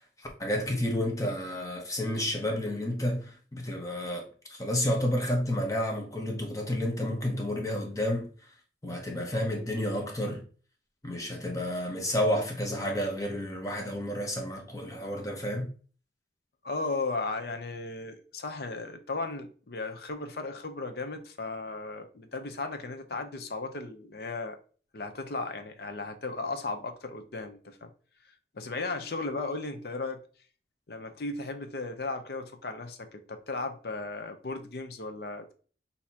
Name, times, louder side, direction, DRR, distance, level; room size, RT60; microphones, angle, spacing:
voice 1, 0.2-8.3 8.8-10.4 11.0-15.7, left 1 dB, 20° left, 0.8 m, -30 dB
voice 2, 16.6-24.6 24.9-27.9 28.5-30.2 30.9-35.5, left 3 dB, 60° left, 0.6 m, -36 dB
6.2 x 2.8 x 2.8 m
head